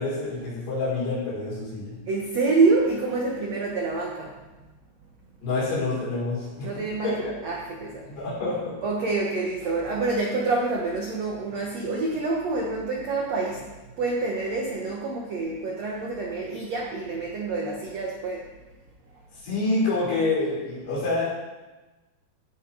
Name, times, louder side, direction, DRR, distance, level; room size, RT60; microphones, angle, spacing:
voice 1, 0.0-2.0 5.4-7.3 8.1-8.7 19.4-21.3, left 3 dB, 65° left, -8 dB, 7.6 m, -27 dB
voice 2, 2.1-4.3 6.6-8.1 8.8-18.4, right 3 dB, 80° right, -1 dB, 1.5 m, -27 dB
16.0 x 8.6 x 4.8 m, 1.1 s
omnidirectional pair, 5.1 m